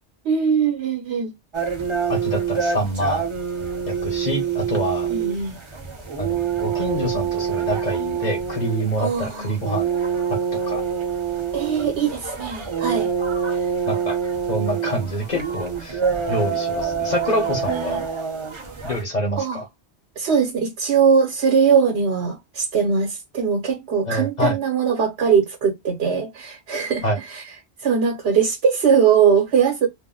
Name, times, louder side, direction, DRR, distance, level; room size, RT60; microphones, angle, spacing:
voice 1, 0.2-1.3 5.1-5.5 9.0-9.5 11.5-13.1 17.7-18.0 19.4-19.6 20.2-27.0 27.3-27.4 27.8-29.9, right 6 dB, 80° right, 1.0 m, -20 dB
sound 1, 1.5-19.0, right 7 dB, 35° right, 0.6 m, -26 dB
voice 2, 2.1-3.2 3.9-5.1 6.2-9.9 10.5-10.8 13.9-14.2 14.5-16.0 16.3-18.0 18.8-19.7 24.1-24.6 27.0-27.2, equal, 45° left, 1.0 m, -26 dB
2.5 x 2.0 x 3.6 m
omnidirectional pair, 1.1 m